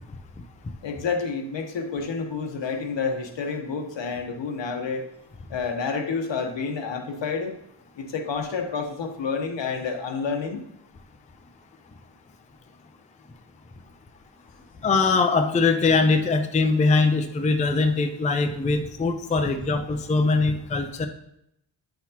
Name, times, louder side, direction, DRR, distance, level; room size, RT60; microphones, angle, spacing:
voice 1, 0.8-5.1 5.5-7.5 8.0-10.6, left 5 dB, 75° left, 4 dB, 1.1 m, -29 dB
voice 2, 14.8-21.1, left 3 dB, 15° left, 6 dB, 0.4 m, -22 dB
9.5 x 5.9 x 2.9 m, 0.78 s
wide cardioid pair, 170°, 45 cm